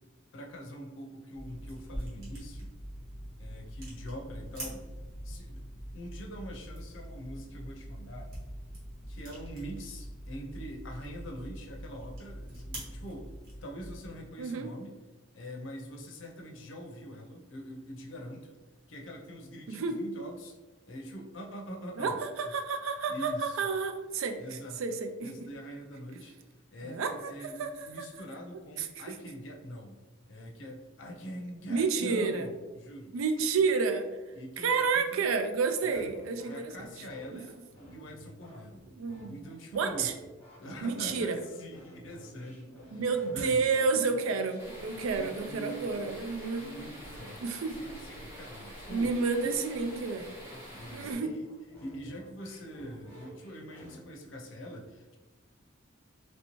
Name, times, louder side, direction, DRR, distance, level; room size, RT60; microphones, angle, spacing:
voice 1, 0.3-2.7 3.4-4.9 5.2-5.6 5.9-8.3 9.1-13.3 13.6-14.9 15.3-18.5 18.9-20.5 20.9-22.2 23.1-23.6 24.4-26.3 26.7-30.0 30.3-33.1 34.3-35.3 35.8-36.0 36.5-37.6 37.9-38.8 39.3-40.1 40.6-43.7 45.2-46.1 46.6-49.1 49.4-49.7 50.5-51.5 51.8-55.2, equal, 65° left, 2 dB, 0.6 m, -44 dB
sound 1, 1.3-14.1, equal, 50° right, 1.3 m, -43 dB
voice 2, 14.4-14.7 19.7-20.0 22.0-25.3 26.8-28.1 28.8-29.2 31.7-32.5 33.1-34.1 34.6-36.9 37.3-37.4 39.0-39.4 39.7-40.1 40.8-41.4 42.9-46.8 47.4-47.8 48.9-50.5 50.9-51.3, right 4 dB, 85° right, 7 dB, 0.4 m, -30 dB
sound 2, 35.9-54.0, equal, 10° left, 1.1 m, -52 dB
sound 3, 44.6-51.1, equal, 15° right, 1.1 m, -47 dB
3.1 x 2.8 x 3.0 m, 1.2 s
head